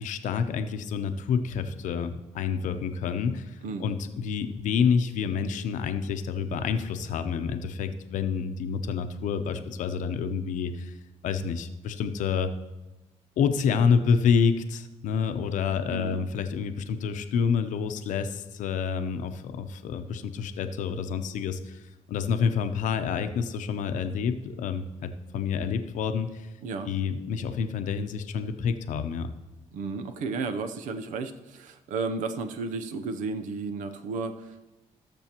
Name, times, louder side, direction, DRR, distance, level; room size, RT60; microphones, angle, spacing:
voice 1, 0.0-10.9 11.2-12.5 13.4-21.8 22.1-26.5 26.9-29.3, left 6 dB, 80° left, 8 dB, 0.7 m, -28 dB
voice 2, 29.7-34.7, right 4 dB, 90° right, 9 dB, 0.7 m, -33 dB
18.0 x 6.9 x 3.0 m, 1.1 s
cardioid pair, 100°, 13 cm